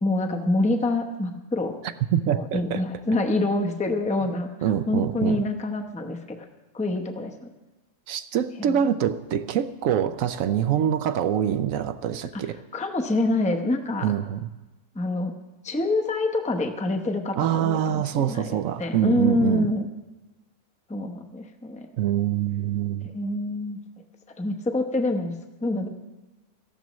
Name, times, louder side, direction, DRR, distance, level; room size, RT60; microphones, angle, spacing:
voice 1, 0.0-1.7 2.3-4.5 4.9-6.5 6.7-7.5 8.6-8.8 12.3-12.4 12.7-14.1 14.9-15.3 15.6-19.9 20.9-21.9 23.1-23.8 24.4-25.3 25.6-25.9, left 2 dB, 5° left, 4 dB, 0.6 m, -26 dB
voice 2, 2.1-2.8 4.6-5.4 8.1-12.6 14.0-14.5 17.4-19.7 22.0-23.1, right 9 dB, 70° right, 12 dB, 0.9 m, -25 dB
18.0 x 14.0 x 3.1 m, 1.1 s
omnidirectional pair, 1.6 m